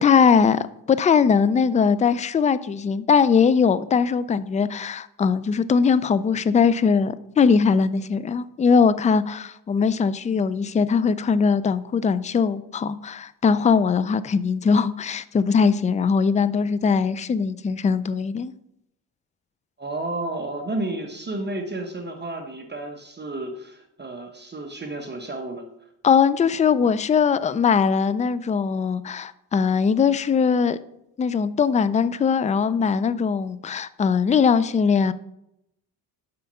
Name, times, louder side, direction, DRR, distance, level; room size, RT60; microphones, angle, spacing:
voice 1, 0.0-18.5 26.0-30.8 31.2-35.1, left 6 dB, 20° left, 16 dB, 0.3 m, -20 dB
voice 2, 19.8-25.6, right 2 dB, 25° right, 4 dB, 1.0 m, -31 dB
5.7 x 5.1 x 5.6 m, 0.80 s
cardioid pair, 75°, 42 cm